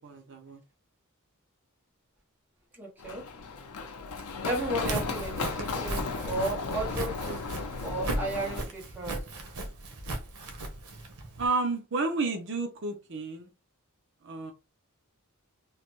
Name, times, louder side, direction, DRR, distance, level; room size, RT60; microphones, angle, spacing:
voice 1, 0.0-0.6 11.4-13.5 14.2-14.5, right 3 dB, 55° right, 0.6 m, -31 dB
voice 2, 2.8-3.2 4.5-7.4 7.8-9.2, right 1 dB, 10° right, 0.9 m, -34 dB
Run, 3.0-8.6, left 4 dB, 85° left, 0.5 m, -35 dB
Walk footsteps, 4.7-11.5, right 2 dB, 85° right, 0.8 m, -37 dB
3.1 x 2.1 x 2.9 m
head